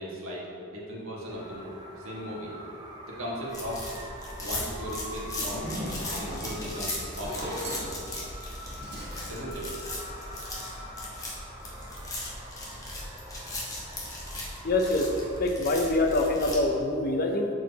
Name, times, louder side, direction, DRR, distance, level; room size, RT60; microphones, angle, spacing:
voice 1, 0.0-2.5 3.1-3.8 4.4-5.7 6.1-7.6 9.3-9.7, equal, 70° right, -4 dB, 1.4 m, -37 dB
sound 1, 1.3-15.4, equal, 20° right, 0.6 m, -45 dB
sound 2, 3.5-16.6, left 1 dB, 15° left, 0.9 m, -38 dB
Zipper (clothing), 5.2-10.5, equal, 50° right, 1.3 m, -39 dB
voice 2, 14.6-15.1 15.4-17.5, left 2 dB, 40° left, 3 dB, 0.6 m, -25 dB
6.7 x 4.7 x 4.0 m, 2.7 s
head